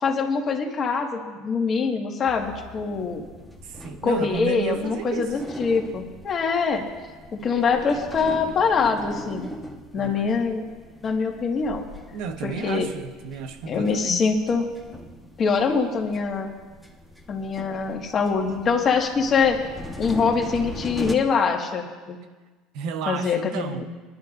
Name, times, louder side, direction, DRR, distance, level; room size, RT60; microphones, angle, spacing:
voice 1, 0.0-3.2 4.0-6.9 7.3-9.5 9.9-10.6 11.0-11.8 12.4-12.9 13.7-14.6 15.4-16.5 17.3-19.6 20.0-22.2 23.1-23.9, left 5 dB, 40° left, 1.7 m, -24 dB
Retro Elevator, 2.3-21.2, equal, 5° right, 1.2 m, -40 dB
voice 2, 3.6-5.3 9.9-10.4 12.1-14.3 22.7-23.9, right 6 dB, 70° right, 0.8 m, -32 dB
21.0 x 11.5 x 2.5 m
supercardioid pair, 105°, 0 cm